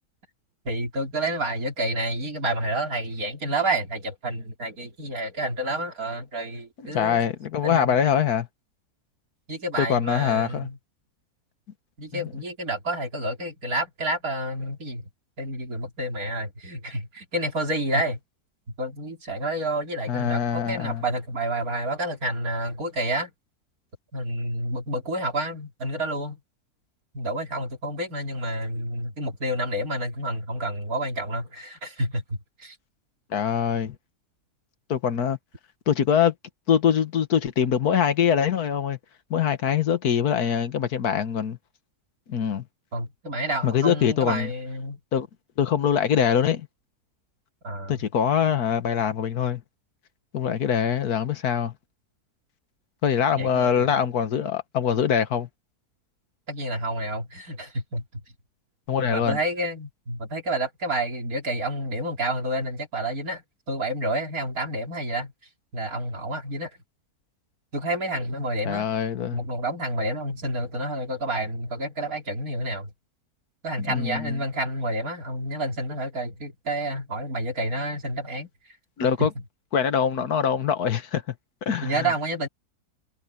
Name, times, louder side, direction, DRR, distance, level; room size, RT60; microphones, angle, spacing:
voice 1, 0.7-7.2 7.6-8.0 9.5-10.8 12.0-15.1 15.4-18.2 18.8-23.3 24.1-26.4 27.1-32.8 42.9-45.0 47.6-48.0 53.3-53.9 56.5-58.2 59.0-63.4 63.7-65.3 65.7-66.7 67.7-68.9 69.3-72.9 73.6-78.5 79.2-79.3 81.8-82.5, right 1 dB, 65° right, 4.1 m, -29 dB
voice 2, 6.9-8.5 9.8-10.7 12.1-12.3 20.1-21.0 33.3-34.0 34.9-35.4 35.9-36.3 36.7-39.0 39.3-41.6 42.3-42.6 43.6-44.5 45.1-45.3 45.6-46.7 47.9-49.6 50.3-51.7 53.0-55.5 58.9-59.4 68.7-69.4 73.8-74.4 79.0-79.3 79.7-81.2 81.6-82.1, left 8 dB, 75° left, 1.7 m, -23 dB
omnidirectional pair, 1.7 m